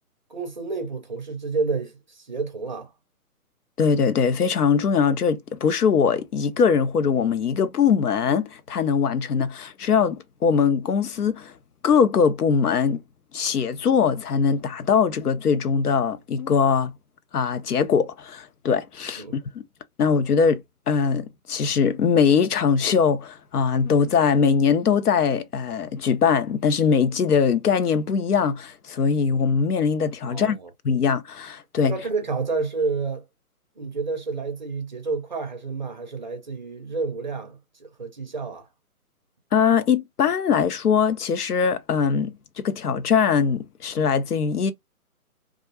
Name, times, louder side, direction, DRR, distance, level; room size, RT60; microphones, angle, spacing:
voice 1, 0.3-2.9 19.2-19.4 30.3-30.7 31.9-33.2 33.8-38.7, right 4 dB, 30° right, 0.5 m, -30 dB
voice 2, 3.8-11.5 11.8-13.0 13.3-16.9 17.3-19.2 19.5-19.6 20.0-20.6 20.9-30.6 30.8-32.0 39.5-44.7, left 6 dB, 80° left, 0.6 m, -21 dB
2.4 x 2.1 x 2.8 m
figure-of-eight pair, 140°, 45 cm